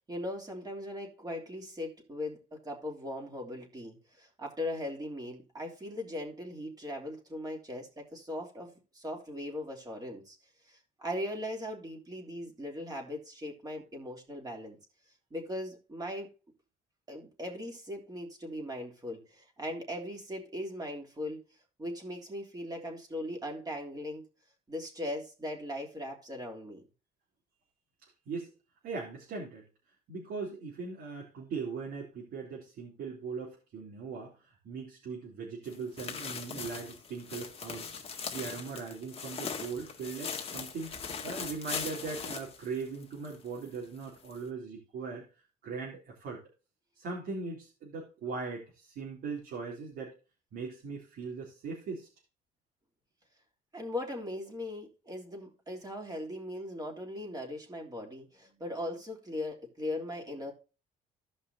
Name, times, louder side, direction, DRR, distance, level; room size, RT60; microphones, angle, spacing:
voice 1, 0.0-10.4 10.6-14.8 15.3-16.3 17.1-21.4 21.8-24.2 24.7-26.8 53.7-60.5, left 1 dB, 20° right, 1 dB, 3.1 m, -39 dB
voice 2, 28.8-29.6 30.1-41.0 41.2-45.2 45.6-46.4 46.9-50.1 50.5-52.1, right 4 dB, 70° right, -3 dB, 3.2 m, -40 dB
sound 1, 35.6-43.3 43.7-43.8 44.3-44.4, left 6 dB, 35° left, 1.7 m, -40 dB
15.5 x 5.5 x 2.8 m, 0.32 s
cardioid pair, 110°, 17 cm